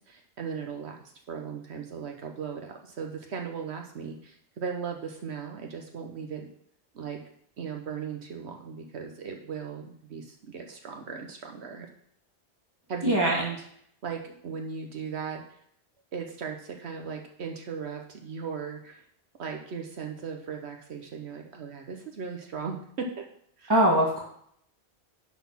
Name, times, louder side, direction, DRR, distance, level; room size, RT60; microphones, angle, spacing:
voice 1, 0.1-1.0 1.3-6.5 6.9-7.2 7.6-11.9 12.9-13.6 14.0-15.4 16.1-19.0 19.4-23.0 23.6-23.7, right 6 dB, 75° right, 3 dB, 1.2 m, -37 dB
voice 2, 13.0-13.4 23.7-24.2, right 1 dB, 20° right, -6 dB, 1.6 m, -21 dB
10.5 x 4.1 x 5.5 m, 0.67 s
omnidirectional pair, 1.1 m